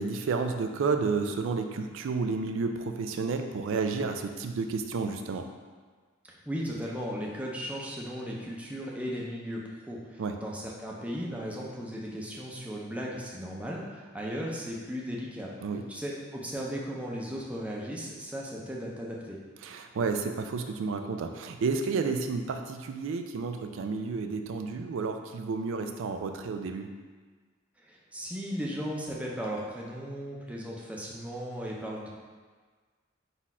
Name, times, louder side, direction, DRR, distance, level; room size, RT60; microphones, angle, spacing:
voice 1, 0.0-5.5 10.2-10.4 15.6-15.9 19.6-26.9, right 4 dB, 65° right, 6 dB, 0.3 m, -31 dB
voice 2, 6.3-15.5 15.9-19.4 27.8-32.1, equal, 5° right, -3 dB, 0.5 m, -36 dB
4.1 x 2.4 x 4.2 m, 1.5 s
head